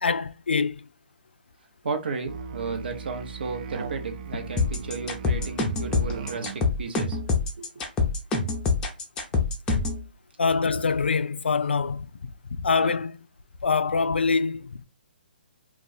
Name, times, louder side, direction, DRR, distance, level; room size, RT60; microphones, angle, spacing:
voice 1, 0.0-0.9 10.4-13.2 13.6-14.8, left 5 dB, 90° left, 0.3 m, -25 dB
voice 2, 1.8-7.8 12.8-12.9, right 4 dB, 65° right, 0.9 m, -34 dB
Musical instrument, 2.3-6.8, right 5 dB, 45° right, 0.4 m, -38 dB
sound 1, 4.6-10.0, left 4 dB, 15° left, 0.6 m, -25 dB
2.4 x 2.4 x 4.0 m
hypercardioid pair, 145°, 6 cm